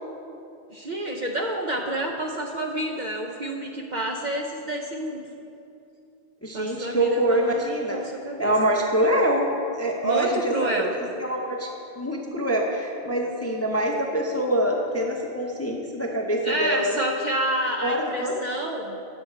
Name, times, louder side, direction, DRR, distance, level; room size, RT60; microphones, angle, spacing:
voice 1, 0.7-5.2 6.5-7.6 7.9-8.5 10.0-10.9 16.4-19.0, right 1 dB, 50° right, 1 dB, 0.6 m, -29 dB
voice 2, 6.4-8.0 8.4-9.5 9.8-10.7 11.2-11.7 12.0-17.0 17.8-18.3, right 1 dB, 20° left, 0 dB, 0.5 m, -25 dB
9.3 x 7.0 x 4.4 m, 2.6 s
omnidirectional pair, 1.2 m